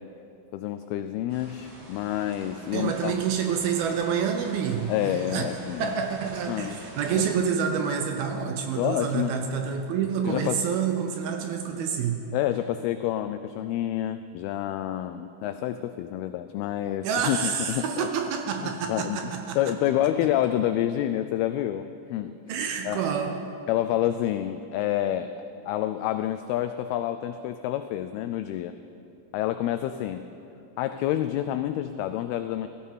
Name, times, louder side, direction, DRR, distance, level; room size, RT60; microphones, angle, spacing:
voice 1, 0.5-3.1 4.9-5.8 6.5-6.8 7.1-7.2 8.8-9.4 10.3-10.6 12.3-18.1 18.6-19.2 19.6-22.3 22.8-23.0 23.7-25.3 25.7-28.7 29.3-30.2 30.8-32.7, left 12 dB, 90° left, 9 dB, 2.2 m, -28 dB
sound 1, 1.3-7.4, right 2 dB, 50° right, 3.1 m, -46 dB
voice 2, 2.7-5.5 5.8-12.3 17.0-19.6 22.5-23.4, right 7 dB, 75° right, 5 dB, 2.4 m, -28 dB
17.5 x 14.0 x 5.5 m, 2.7 s
omnidirectional pair, 5.0 m